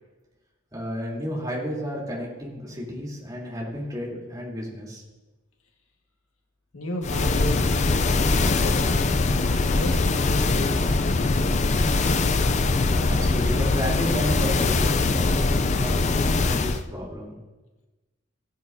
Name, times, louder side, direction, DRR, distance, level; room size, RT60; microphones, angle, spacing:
voice 1, 0.7-5.0 12.8-17.4, equal, 20° right, -5 dB, 3.4 m, -32 dB
voice 2, 6.7-7.7 8.4-11.2, left 1 dB, 80° left, 1 dB, 1.8 m, -34 dB
sound 1, 7.0-16.8, left 3 dB, 35° left, 0.5 m, -22 dB
16.5 x 10.0 x 2.8 m, 1.1 s
head